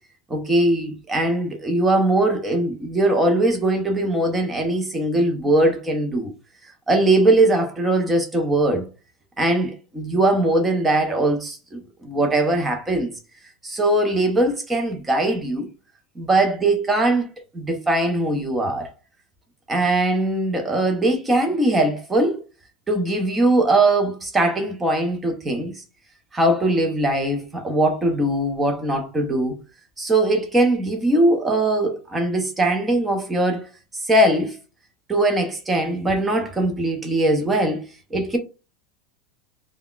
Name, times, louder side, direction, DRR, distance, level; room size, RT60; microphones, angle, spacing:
voice 1, 0.3-6.3 6.9-8.9 9.4-13.1 13.6-15.7 16.2-17.3 17.5-18.9 19.7-22.4 22.9-25.8 26.3-29.6 30.0-33.7 34.0-34.6 35.1-38.4, right 1 dB, 10° right, 0.5 m, -21 dB
2.3 x 2.1 x 3.7 m
supercardioid pair, 165°, 0 cm